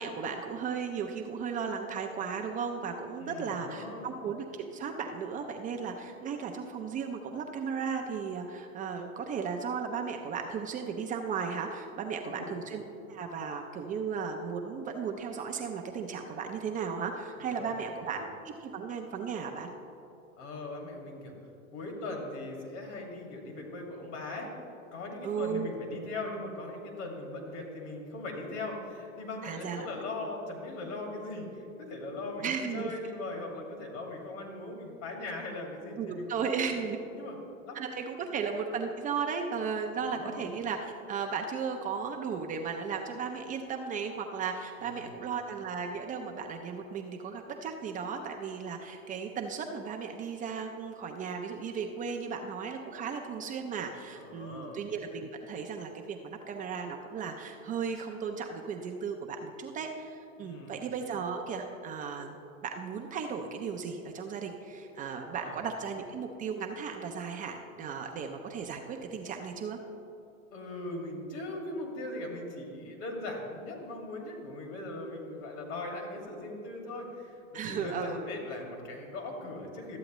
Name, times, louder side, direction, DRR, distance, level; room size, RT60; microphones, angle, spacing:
voice 1, 0.0-12.8 13.1-19.7 25.2-25.7 29.4-29.9 32.4-32.9 36.0-37.0 37.7-62.3 62.6-69.8 77.5-78.3, right 6 dB, 20° right, 3 dB, 0.4 m, -35 dB
voice 2, 3.2-4.1 12.2-12.6 17.4-18.2 20.4-21.3 21.7-24.5 24.9-36.5 37.1-37.4 37.7-37.8 38.2-38.3 40.1-40.5 44.8-45.2 54.2-54.8 60.4-60.7 65.3-65.6 70.5-80.0, left 2 dB, 60° left, 1 dB, 2.2 m, -40 dB
12.5 x 7.7 x 3.0 m, 2.7 s
hypercardioid pair, 105°, 41 cm